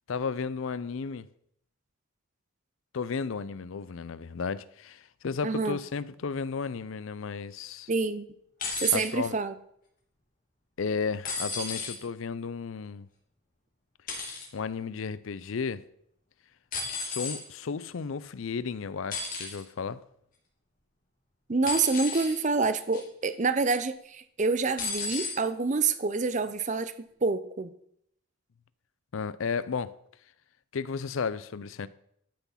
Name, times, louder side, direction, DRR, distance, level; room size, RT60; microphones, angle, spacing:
voice 1, 0.1-1.3 2.9-7.9 8.9-9.4 10.8-13.1 14.5-15.9 16.9-20.0 29.1-30.0 30.7-31.9, left 5 dB, 70° left, 0.5 m, -33 dB
voice 2, 5.4-5.8 7.9-8.3 8.8-9.5 21.5-26.9 27.2-27.7, right 4 dB, 35° right, 0.5 m, -27 dB
sound 1, 8.6-9.1 11.2-12.0 14.1-14.5 16.7-17.4 19.1-19.6 21.7-22.4 22.9-23.2 24.8-25.4 26.4-26.5, left 4 dB, 40° left, 2.7 m, -34 dB
12.0 x 5.9 x 5.7 m
head